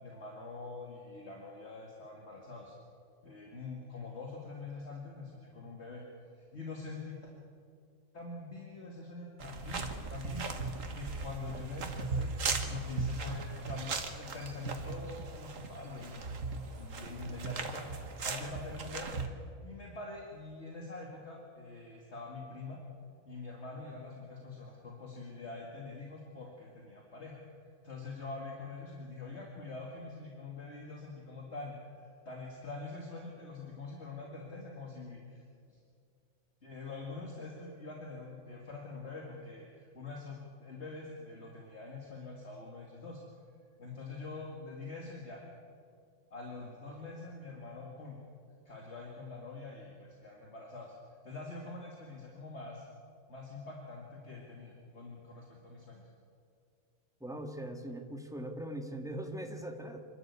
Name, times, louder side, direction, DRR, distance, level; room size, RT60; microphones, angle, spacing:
voice 1, 0.0-2.7 3.2-6.0 6.3-7.3 8.1-12.3 12.7-16.2 16.8-19.2 19.6-22.8 23.3-27.4 27.8-35.4 35.7-35.8 36.6-43.2 43.8-45.4 46.3-48.2 48.7-50.9 51.2-52.9 53.3-56.1, left 3 dB, 55° left, -1 dB, 2.6 m, -45 dB
sound 1, 9.4-19.3, right 4 dB, 80° right, 1.9 m, -38 dB
voice 2, 57.2-60.0, right 1 dB, 5° right, 4 dB, 1.7 m, -40 dB
26.0 x 12.5 x 8.3 m, 2.3 s
omnidirectional pair, 1.3 m